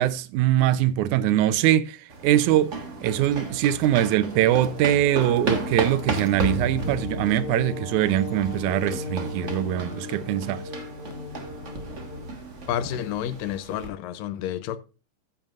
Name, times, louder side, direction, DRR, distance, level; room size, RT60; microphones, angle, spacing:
voice 1, 0.0-2.8 3.0-10.6, right 12 dB, 75° right, 2.0 m, -22 dB
sound 1, 2.1-13.9, right 2 dB, 40° right, 1.1 m, -34 dB
sound 2, 4.3-12.3, left 3 dB, 60° left, 3.0 m, -37 dB
voice 2, 12.7-14.8, left 10 dB, 85° left, 2.4 m, -30 dB
14.5 x 7.2 x 2.5 m
omnidirectional pair, 3.9 m